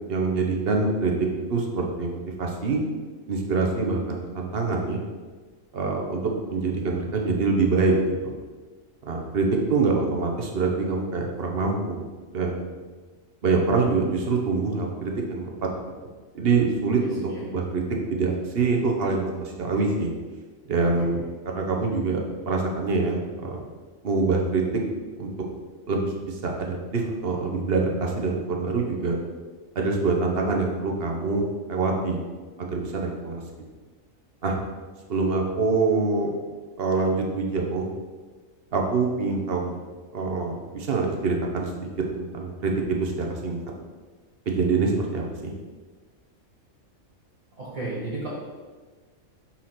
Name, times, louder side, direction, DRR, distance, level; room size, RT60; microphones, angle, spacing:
voice 1, 0.1-1.1 1.5-2.8 3.3-5.0 5.7-6.2 6.5-7.9 8.2-8.3 9.0-12.1 12.3-12.7 13.4-15.7 16.3-17.8 18.1-20.1 20.7-21.2 21.6-23.6 24.0-24.6 25.2-25.3 25.9-29.2 29.7-32.2 32.6-33.4 34.4-34.5 35.1-36.3 36.8-37.9 38.7-39.8 40.1-41.9 42.2-43.6 44.5-45.5, right 4 dB, 50° right, 1 dB, 1.0 m, -25 dB
voice 2, 17.0-17.4 20.9-21.0 47.6-48.3, right 2 dB, 75° right, -7 dB, 2.1 m, -34 dB
4.7 x 4.3 x 5.7 m, 1.4 s
omnidirectional pair, 1.4 m